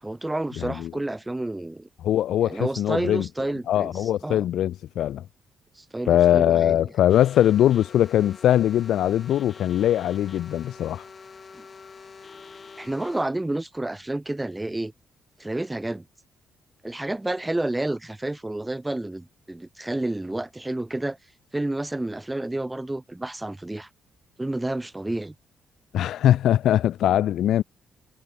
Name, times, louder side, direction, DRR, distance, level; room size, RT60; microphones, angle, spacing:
voice 1, 0.0-1.9 2.4-4.4 5.8-6.9 11.5-11.7 12.8-14.9 15.4-16.0 16.8-21.2 21.5-23.9 24.4-25.3, right 1 dB, 15° right, 0.4 m, -30 dB
voice 2, 0.6-0.9 2.0-3.3 3.7-5.2 6.1-11.0 25.9-27.6, left 11 dB, 75° left, 0.3 m, -21 dB
sound 1, 7.1-13.3, left 5 dB, 40° left, 5.5 m, -46 dB
supercardioid pair, 65°, 0 cm